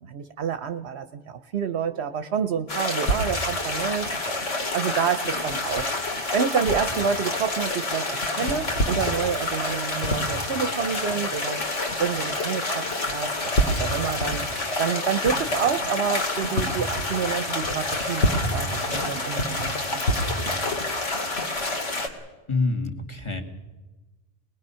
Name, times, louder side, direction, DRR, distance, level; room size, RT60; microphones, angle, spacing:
voice 1, 0.0-4.1 4.7-5.9 6.3-11.6 12.0-14.4 14.8-20.0, right 7 dB, 60° right, 10 dB, 1.0 m, -28 dB
sound 1, 2.7-22.1, left 1 dB, 75° left, 2.7 m, -27 dB
voice 2, 22.5-23.4, left 3 dB, 25° left, 3 dB, 1.9 m, -26 dB
25.0 x 20.5 x 5.7 m, 1.2 s
omnidirectional pair, 1.3 m